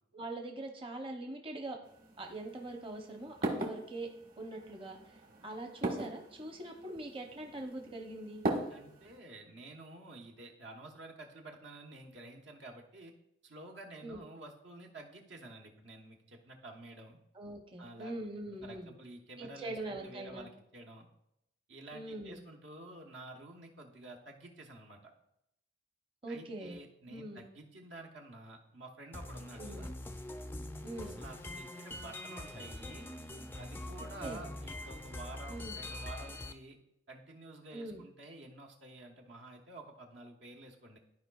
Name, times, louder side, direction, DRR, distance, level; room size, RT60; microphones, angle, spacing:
voice 1, 0.1-1.8 2.2-4.1 4.4-8.4 14.0-14.2 17.3-18.9 19.4-20.5 21.9-22.4 26.2-26.8 27.1-27.4 29.6-29.9 30.8-31.2 34.2-34.4 35.5-35.8 37.7-38.0, right 2 dB, 30° right, 3 dB, 0.8 m, -43 dB
sound 1, 1.8-9.2, right 2 dB, 50° right, 1.4 m, -40 dB
voice 2, 8.7-13.1 13.4-17.2 17.8-18.1 18.5-21.1 21.7-25.1 26.3-29.9 31.0-33.1 33.6-36.8 37.1-41.0, right 2 dB, 80° right, 2 dB, 1.1 m, -50 dB
sound 2, 29.1-36.5, left 1 dB, 10° left, 0.3 m, -44 dB
13.0 x 4.8 x 2.3 m, 0.80 s
head